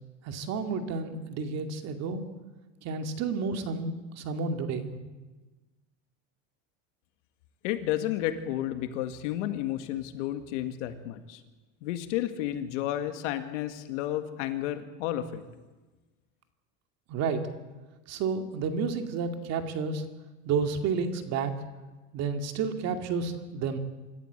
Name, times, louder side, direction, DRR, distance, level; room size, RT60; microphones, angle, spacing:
voice 1, 0.3-2.2 2.8-5.0 17.1-17.4 18.1-20.0 20.4-21.5 22.1-23.8, right 5 dB, 45° right, 6 dB, 2.3 m, -31 dB
voice 2, 7.6-11.4 11.8-15.4, left 12 dB, 75° left, 9 dB, 2.0 m, -32 dB
26.0 x 13.5 x 8.1 m, 1.2 s
supercardioid pair, 145°, 37 cm